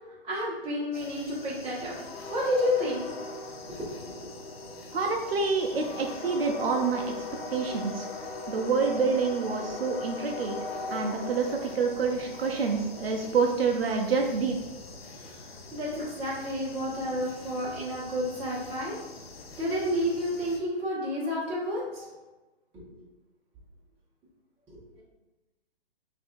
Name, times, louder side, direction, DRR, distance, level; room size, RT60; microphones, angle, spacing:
voice 1, 0.2-2.0 2.3-3.1 15.7-19.0 19.6-22.0 22.7-22.8, left 1 dB, 20° right, -7 dB, 1.5 m, -30 dB
sound 1, 0.9-20.6, left 3 dB, 75° left, 0.7 m, -41 dB
voice 2, 4.9-7.0 7.5-8.1 8.5-10.6 10.9-14.6, right 4 dB, 75° right, 2 dB, 0.6 m, -27 dB
5.3 x 2.7 x 2.6 m, 1.1 s
hypercardioid pair, 130°, 30 cm